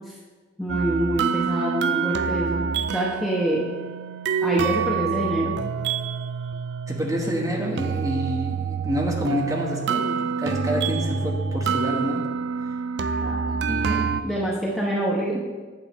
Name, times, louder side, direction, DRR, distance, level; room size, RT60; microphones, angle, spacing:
voice 1, 0.6-3.7 4.4-5.6 13.2-14.0 14.2-15.4, right 1 dB, ahead, -5 dB, 0.8 m, -26 dB
sound 1, 0.7-14.2, right 6 dB, 60° right, 0.3 m, -27 dB
voice 2, 6.9-12.2 13.6-14.3, equal, 15° right, -1 dB, 1.0 m, -28 dB
8.6 x 7.1 x 3.5 m, 1.4 s
head